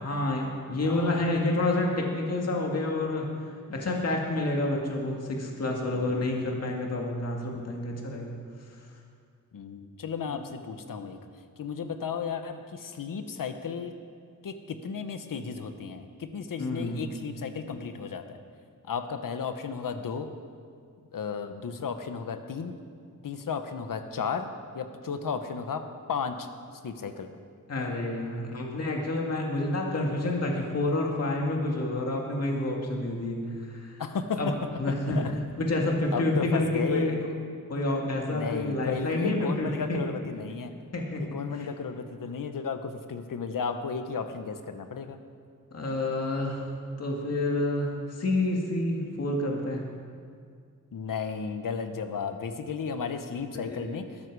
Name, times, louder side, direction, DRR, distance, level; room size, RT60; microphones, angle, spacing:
voice 1, 0.0-3.3 3.7-8.4 16.6-17.1 27.7-34.0 34.4-34.5 34.8-35.3 35.6-37.1 37.7-40.0 40.9-41.7 45.7-46.6 47.0-49.9 53.5-53.8, left 2 dB, 50° left, 0 dB, 2.1 m, -29 dB
voice 2, 0.8-1.2 5.9-6.2 9.5-11.2 11.6-14.0 14.4-18.4 18.8-20.3 21.1-22.8 23.2-24.5 24.7-25.8 26.1-26.5 26.8-27.4 34.0-34.5 35.0-35.4 36.1-37.3 38.3-40.7 41.2-45.2 50.9-54.2, left 6 dB, 80° left, 8 dB, 1.2 m, -34 dB
21.0 x 13.0 x 4.8 m, 2.2 s
wide cardioid pair, 175°, 33 cm